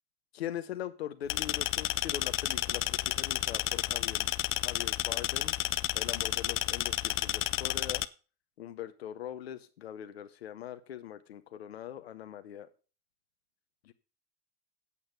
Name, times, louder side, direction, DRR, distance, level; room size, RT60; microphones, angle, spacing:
voice 1, 0.3-4.3 4.6-5.6 5.9-8.0 8.6-12.7 13.8-13.9, left 11 dB, 85° left, 11 dB, 0.7 m, -41 dB
sound 1, 1.3-8.0, left 15 dB, 40° left, 0.6 m, -31 dB
8.5 x 8.3 x 5.7 m, 0.36 s
hypercardioid pair, 70°, 30 cm